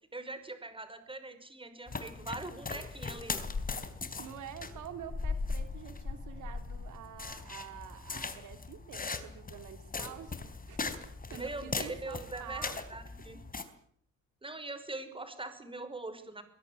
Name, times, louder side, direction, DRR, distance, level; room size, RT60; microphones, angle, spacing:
voice 1, 0.1-3.5 11.3-13.4 14.4-16.4, right 2 dB, 15° right, 10 dB, 5.6 m, -42 dB
sound 1, 1.9-13.6, left 4 dB, 30° left, 4.0 m, -39 dB
voice 2, 4.2-10.9 11.3-12.8, right 10 dB, 80° right, 9 dB, 3.1 m, -47 dB
22.5 x 21.5 x 8.5 m, 0.64 s
cardioid pair, 90°, 30 cm